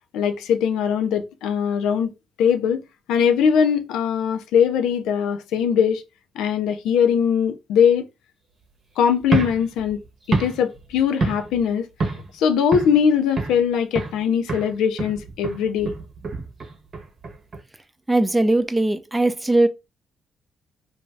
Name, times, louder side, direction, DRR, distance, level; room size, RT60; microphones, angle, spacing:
voice 1, 0.1-2.1 2.4-2.8 3.1-6.0 6.4-8.1 9.0-10.0 10.3-11.9 12.3-15.9, left 7 dB, 90° left, 0.4 m, -21 dB
sound 1, 9.2-11.7 12.0-12.3 12.7-13.6 13.9-14.2 14.5-17.6, right 3 dB, 50° right, 0.8 m, -28 dB
voice 2, 18.1-19.7, right 2 dB, 15° right, 0.4 m, -19 dB
2.6 x 2.3 x 3.2 m
cardioid pair, 90°, 0 cm